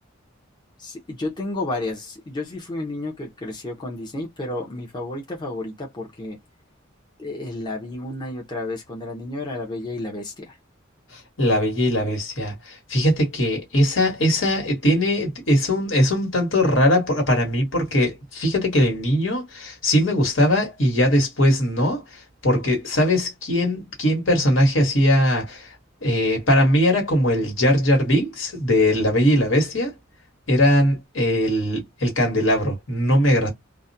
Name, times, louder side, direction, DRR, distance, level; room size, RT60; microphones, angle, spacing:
voice 1, 0.8-6.4 7.2-10.6, left 2 dB, 25° left, 0.6 m, -31 dB
voice 2, 11.1-25.7 26.0-29.9 30.5-33.5, equal, 70° left, 1.3 m, -20 dB
2.3 x 2.1 x 2.6 m
head